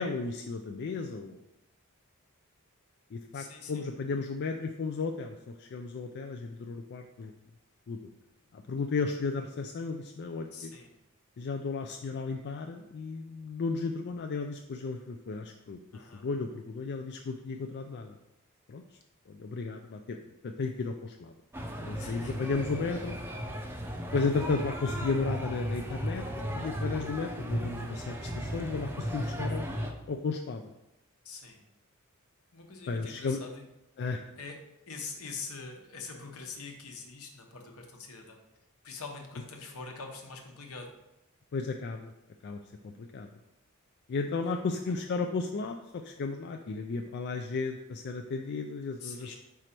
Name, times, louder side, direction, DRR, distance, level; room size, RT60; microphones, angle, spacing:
voice 1, 0.0-1.4 3.1-7.3 7.9-8.0 8.5-10.7 11.4-18.2 18.7-18.8 19.3-20.2 20.4-21.3 21.9-23.2 24.1-26.2 26.5-29.7 30.1-30.7 32.9-33.4 34.0-34.2 41.5-42.1 42.4-43.3 44.1-49.3, left 4 dB, 50° left, 4 dB, 0.4 m, -34 dB
voice 2, 3.3-3.8 10.5-11.0 15.9-16.3 22.0-22.5 31.2-31.6 32.5-33.6 34.4-38.4 38.8-41.0 44.7-45.0 49.0-49.4, left 4 dB, 75° left, 3 dB, 1.0 m, -44 dB
sound 1, 21.5-29.9, equal, 10° right, 0.6 m, -35 dB
5.0 x 4.7 x 4.4 m, 0.90 s
head